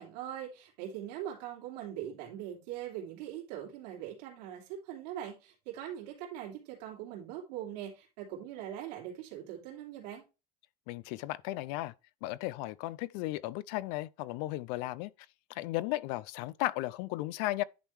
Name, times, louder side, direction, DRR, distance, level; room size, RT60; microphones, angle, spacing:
voice 1, 0.0-10.2, right 11 dB, 85° right, 2.7 m, -41 dB
voice 2, 10.9-11.9 12.2-15.1 15.5-17.6, left 17 dB, 75° left, 0.5 m, -35 dB
10.5 x 3.7 x 4.5 m
supercardioid pair, 125°, 21 cm